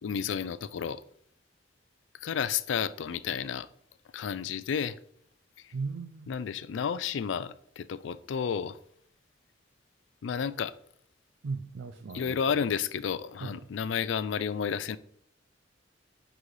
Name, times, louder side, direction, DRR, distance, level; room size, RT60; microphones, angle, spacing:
voice 1, 0.0-1.0 2.2-3.7 4.1-5.0 5.6-5.7 6.3-8.8 10.2-10.7 12.1-15.0, left 7 dB, 80° left, 0.4 m, -31 dB
voice 2, 5.7-6.3 11.4-12.4 13.4-13.7, right 4 dB, 80° right, 0.4 m, -37 dB
9.8 x 4.0 x 3.2 m
head